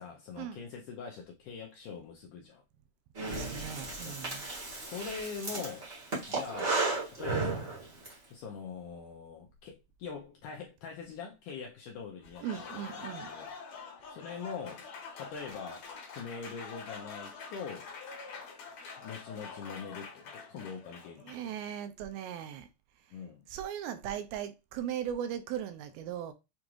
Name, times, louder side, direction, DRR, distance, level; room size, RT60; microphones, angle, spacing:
voice 1, 0.0-2.6 4.0-4.2 4.7-5.9 6.3-6.8 7.1-7.7 8.3-12.8 13.3-13.5 14.1-14.9 15.2-15.8 16.1-17.9 19.0-20.2 20.5-21.5 23.1-23.4, left 5 dB, 80° left, 1.8 m, -43 dB
Breathing, 3.1-8.1, right 3 dB, 55° right, 0.7 m, -34 dB
voice 2, 3.3-4.5 12.4-13.3 21.2-22.7 23.1-23.2 23.5-26.3, right 9 dB, 80° right, 2.3 m, -38 dB
Applause, 12.2-21.6, left 5 dB, 60° left, 2.0 m, -45 dB
7.0 x 2.4 x 2.9 m
omnidirectional pair, 4.4 m